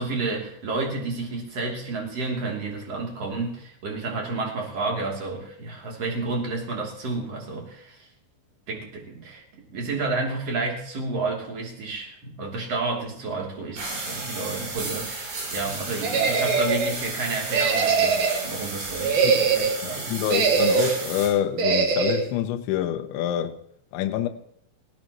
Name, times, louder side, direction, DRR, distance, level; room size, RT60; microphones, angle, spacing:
voice 1, 0.0-8.1 8.7-9.4 9.7-20.2, right 3 dB, 35° right, 3.5 m, -31 dB
sound 1, 13.8-21.3, right 3 dB, 60° right, 7.4 m, -33 dB
sound 2, 16.0-16.9 17.5-18.5 18.9-19.8 20.3-21.0 21.6-22.3, right 5 dB, 80° right, 1.7 m, -22 dB
voice 2, 20.1-23.5 23.9-24.3, left 11 dB, 75° left, 3.0 m, -26 dB
20.0 x 17.0 x 3.1 m
omnidirectional pair, 5.8 m